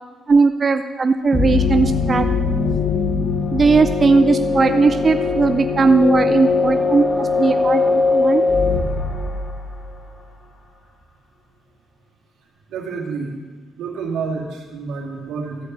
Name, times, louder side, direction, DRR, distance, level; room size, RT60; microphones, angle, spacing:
voice 1, 0.3-2.3 3.5-8.5, right 4 dB, 35° right, 8 dB, 0.4 m, -17 dB
sound 1, 1.3-10.0, left 4 dB, 40° left, 1.8 m, -20 dB
voice 2, 12.7-13.4 13.8-15.7, right 5 dB, 90° right, -2 dB, 2.2 m, -29 dB
13.5 x 4.6 x 8.0 m, 1.4 s
cardioid pair, 90°, 0 cm